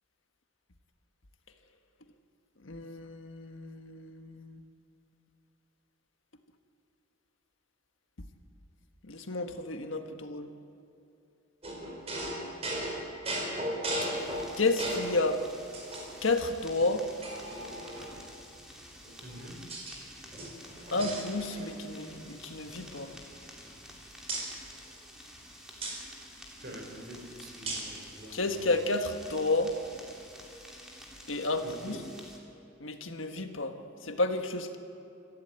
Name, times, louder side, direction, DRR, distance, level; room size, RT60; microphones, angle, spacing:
voice 1, 2.6-4.6 9.0-10.5 14.0-14.1 14.6-15.4 16.2-17.1 20.9-23.1 28.3-29.8 31.3-32.0 32.8-33.7 34.0-34.8, left 2 dB, 80° left, 6 dB, 1.5 m, -31 dB
sound 1, 11.6-15.2 15.7-16.4 16.8-16.9 17.2-18.3 19.0-20.0 20.3-21.8 22.1-22.3 22.6-23.9 24.3-24.5 25.8-26.0 27.7-28.0, right 1 dB, 30° right, 4.8 m, -37 dB
sound 2, 14.1-32.4, equal, 5° right, 2.9 m, -50 dB
voice 2, 19.2-19.7 26.5-28.8 31.6-32.2, right 1 dB, 50° right, 2 dB, 4.0 m, -46 dB
25.0 x 15.0 x 8.9 m, 2.7 s
head